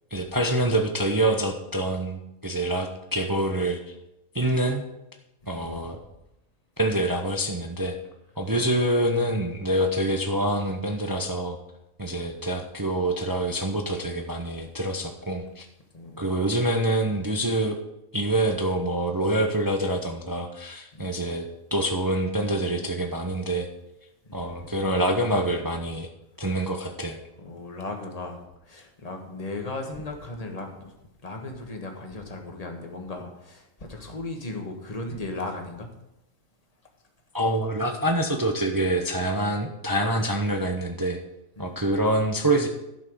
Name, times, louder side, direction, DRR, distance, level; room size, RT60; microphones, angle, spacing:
voice 1, 0.1-3.9 4.3-4.8 5.5-6.0 6.8-7.9 8.4-11.6 12.0-15.7 16.2-17.8 18.1-23.7 24.3-26.1 26.4-27.2 37.3-41.2 41.6-42.7, right 1 dB, 20° right, 4 dB, 0.5 m, -26 dB
voice 2, 5.4-5.9 12.2-12.4 15.9-16.5 20.9-21.1 24.2-24.6 27.4-30.9 31.2-35.9 41.6-41.8, left 2 dB, 30° left, 3 dB, 1.4 m, -37 dB
11.5 x 5.7 x 6.2 m, 0.89 s
omnidirectional pair, 1.5 m